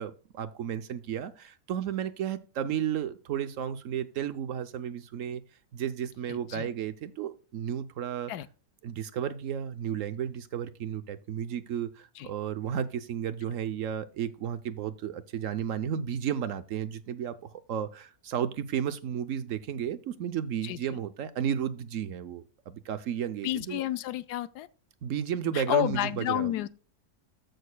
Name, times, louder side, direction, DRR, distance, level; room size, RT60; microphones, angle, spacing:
voice 1, 0.0-5.4 5.7-8.3 8.8-23.8 25.0-26.5, right 9 dB, 65° right, 0.9 m, -33 dB
voice 2, 6.3-6.7 8.3-8.5 12.2-12.3 20.6-21.0 23.4-24.7 25.5-26.7, left 12 dB, 85° left, 1.2 m, -30 dB
14.5 x 6.4 x 2.2 m
omnidirectional pair, 1.6 m